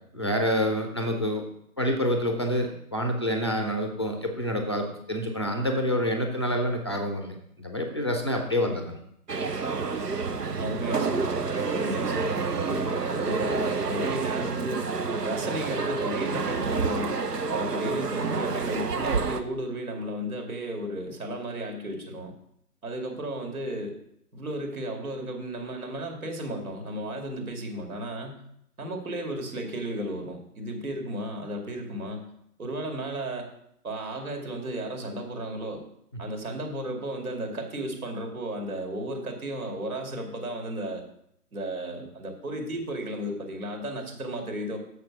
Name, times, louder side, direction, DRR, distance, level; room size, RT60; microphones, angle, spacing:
voice 1, 0.1-1.4 1.8-9.0, equal, 20° left, 4 dB, 0.5 m, -27 dB
voice 2, 8.6-8.9 10.6-14.9 15.2-17.2 17.5-22.3 22.8-24.0 24.3-28.4 28.8-32.3 32.6-33.5 33.8-35.8 36.2-41.1 41.5-44.8, right 1 dB, 65° right, 2 dB, 2.3 m, -34 dB
sound 1, 9.3-19.4, right 4 dB, 85° right, 0.9 m, -28 dB
6.9 x 6.1 x 5.9 m, 0.73 s
figure-of-eight pair, 140°, 47 cm